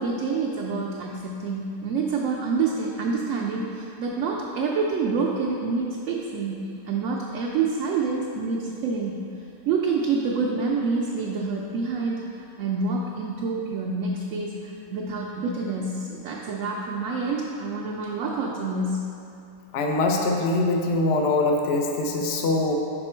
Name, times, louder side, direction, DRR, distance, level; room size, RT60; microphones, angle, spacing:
voice 1, 0.0-9.2 9.7-19.0, right 4 dB, 70° right, -2 dB, 0.8 m, -27 dB
voice 2, 19.7-22.8, left 2 dB, 60° left, 1 dB, 0.7 m, -23 dB
5.4 x 4.4 x 4.3 m, 2.6 s
omnidirectional pair, 1.6 m